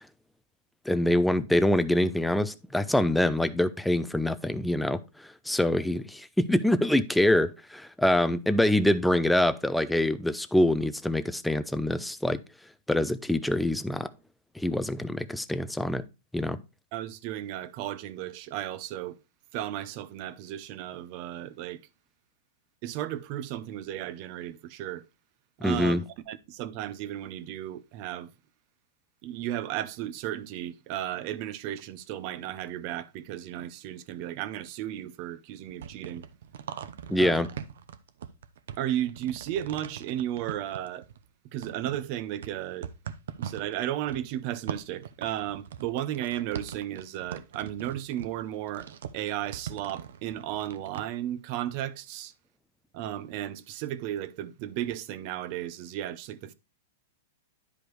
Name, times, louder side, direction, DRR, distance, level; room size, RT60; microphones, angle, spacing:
voice 1, 0.9-12.4 12.9-14.1 14.6-16.0 16.3-16.6 25.6-26.0 37.1-37.5, left 1 dB, ahead, 0.4 m, -25 dB
voice 2, 16.9-19.2 19.5-21.8 22.8-25.1 25.6-28.3 29.2-36.2 37.1-37.4 38.8-41.1 41.5-42.9 43.4-48.9 49.1-52.3 52.9-56.5, right 12 dB, 40° right, 0.6 m, -34 dB
sound 1, 35.6-41.3 41.6-51.0, right 8 dB, 80° right, 0.7 m, -41 dB
10.5 x 5.0 x 3.1 m
supercardioid pair, 155°, 0 cm